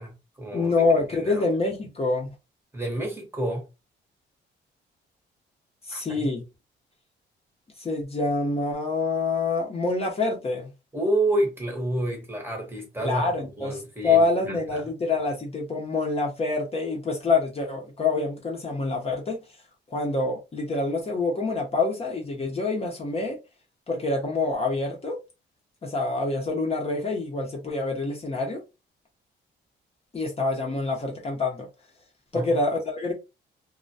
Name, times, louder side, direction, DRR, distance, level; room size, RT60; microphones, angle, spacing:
voice 1, 0.0-0.7 1.1-1.4 2.7-3.7 5.9-6.3 10.9-14.9 32.3-32.6, right 1 dB, 10° right, 0.9 m, -29 dB
voice 2, 0.5-2.3 5.8-6.4 7.8-10.7 13.0-19.4 19.9-23.4 23.9-25.2 25.8-28.6 30.1-31.7 32.3-33.1, left 3 dB, 30° left, 0.7 m, -26 dB
2.2 x 2.1 x 2.6 m
cardioid pair, 90°, 20 cm